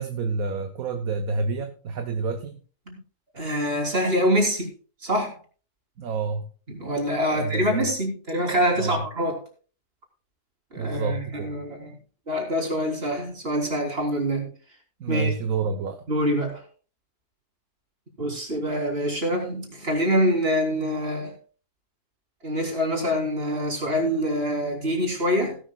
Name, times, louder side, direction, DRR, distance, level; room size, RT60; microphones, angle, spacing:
voice 1, 0.0-2.6 6.0-6.4 7.3-7.9 8.8-9.1 10.8-11.6 15.0-16.0, right 4 dB, 65° right, 6 dB, 1.4 m, -28 dB
voice 2, 3.3-4.7 5.0-5.4 6.7-9.4 10.7-12.0 12.3-14.5 15.1-15.3 16.1-16.6 18.2-21.3 22.4-25.6, equal, 40° right, 0 dB, 3.7 m, -25 dB
17.0 x 11.5 x 2.3 m, 0.38 s
omnidirectional pair, 1.6 m